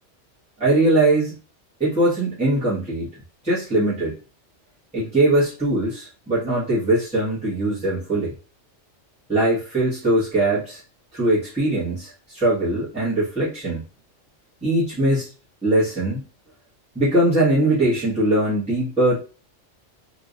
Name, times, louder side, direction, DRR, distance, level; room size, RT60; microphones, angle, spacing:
voice 1, 0.6-1.4 1.8-4.2 4.9-8.3 9.3-10.8 11.1-13.8 14.6-15.3 15.6-16.2 17.0-19.2, right 1 dB, 5° right, -11 dB, 1.6 m, -21 dB
3.4 x 3.1 x 2.6 m, 0.34 s
omnidirectional pair, 1.2 m